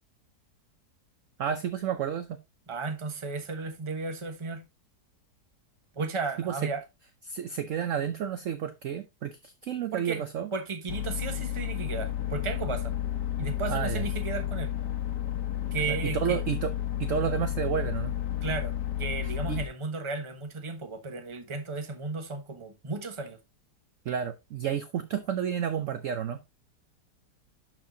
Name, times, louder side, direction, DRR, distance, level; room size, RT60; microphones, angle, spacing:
voice 1, 1.4-2.4 6.4-6.7 7.3-10.5 13.7-14.0 15.9-16.7 17.0-18.1 19.2-19.6 24.1-26.4, right 8 dB, 65° right, 0.8 m, -31 dB
voice 2, 2.7-4.6 5.9-6.8 9.9-10.2 10.5-12.9 13.4-14.7 15.7-16.4 18.4-23.4, right 4 dB, 20° right, 0.9 m, -34 dB
sound 1, 10.9-19.7, left 12 dB, 75° left, 1.4 m, -32 dB
12.0 x 4.4 x 2.6 m
omnidirectional pair, 1.9 m